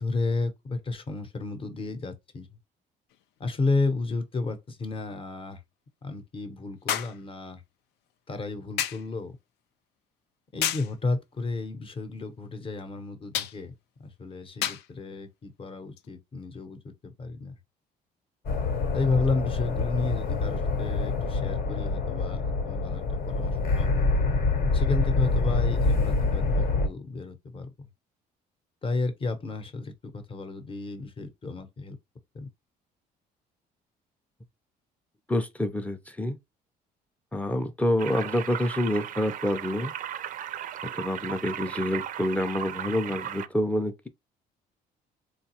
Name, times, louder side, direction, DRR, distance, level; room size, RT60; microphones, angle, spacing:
voice 1, 0.0-2.6 3.4-5.6 6.0-7.6 8.3-9.3 10.5-13.7 14.0-17.5 18.9-24.0 24.7-27.9 28.8-32.0 32.3-32.5, left 3 dB, 30° left, 0.8 m, -32 dB
sound 1, 3.1-3.2 6.9-7.2 8.8-9.1 10.6-10.9 13.3-13.6 14.6-14.9 16.0-16.1, left 10 dB, 80° left, 0.4 m, -30 dB
sound 2, 18.5-26.9, left 3 dB, 60° left, 0.9 m, -26 dB
voice 2, 35.3-36.4 37.3-39.9 40.8-44.1, left 1 dB, 10° left, 0.5 m, -27 dB
sound 3, 38.0-43.5, right 11 dB, 50° right, 0.4 m, -36 dB
3.9 x 2.3 x 2.8 m
cardioid pair, 110°, 17 cm